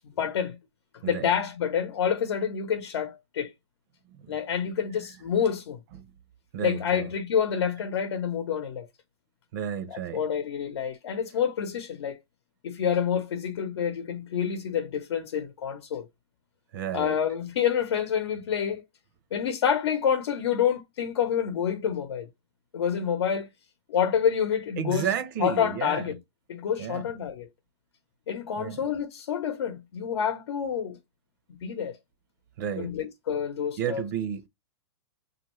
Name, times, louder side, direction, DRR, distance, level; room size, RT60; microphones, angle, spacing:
voice 1, 0.2-0.6 1.1-3.5 4.3-5.8 6.6-8.9 9.9-12.2 12.6-16.1 16.9-18.8 19.3-22.3 22.7-23.5 23.9-25.1 25.4-26.2 26.5-27.5 28.3-31.0 31.6-32.0 32.8-34.0, left 8 dB, 85° left, 0.8 m, -28 dB
voice 2, 6.5-7.1 9.5-10.2 16.7-17.2 24.8-26.0 26.8-27.1 28.6-28.8 32.6-32.9 33.8-34.5, right 8 dB, 50° right, 0.6 m, -32 dB
5.1 x 2.5 x 3.0 m
supercardioid pair, 160°, 14 cm